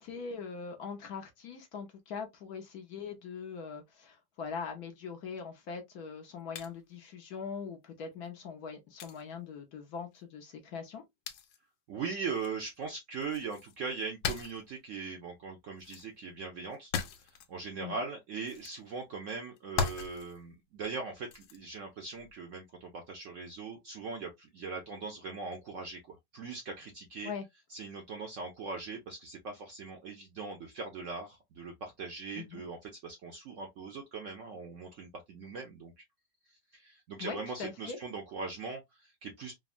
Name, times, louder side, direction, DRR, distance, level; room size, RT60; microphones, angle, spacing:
voice 1, 0.0-11.0 17.8-18.1 27.2-27.4 32.3-32.6 37.2-38.0, left 5 dB, 65° left, 1.1 m, -42 dB
sound 1, 6.6-6.7 8.2-8.3 9.0-9.2 11.3-11.6 12.3-12.8 13.2-14.7 15.8-16.1 16.7-17.5 18.5-18.8 19.6-20.4 21.3-21.6 22.1-22.3, left 6 dB, 85° left, 1.3 m, -38 dB
voice 2, 11.9-16.9 17.2-27.3 27.7-35.9 36.7-39.5, right 4 dB, 65° right, 0.8 m, -40 dB
3.6 x 2.0 x 2.4 m
omnidirectional pair, 1.9 m